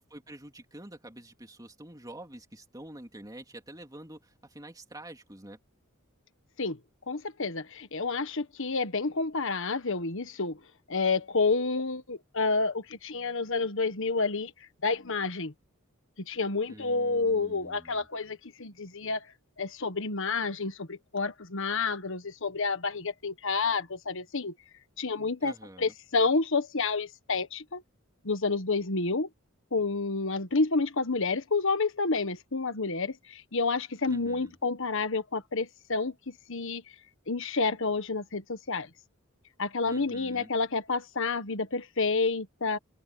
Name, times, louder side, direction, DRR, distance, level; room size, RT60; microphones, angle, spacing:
voice 1, 0.0-5.6 16.7-18.1 25.4-25.9 34.1-34.5 39.8-40.5, right 1 dB, 20° right, 3.4 m, -47 dB
voice 2, 7.1-10.6 10.9-14.5 14.8-15.5 16.3-19.2 19.6-24.5 25.0-25.5 25.8-27.8 28.2-29.3 29.7-36.8 37.3-38.9 39.6-42.8, left 4 dB, 65° left, 1.6 m, -29 dB
head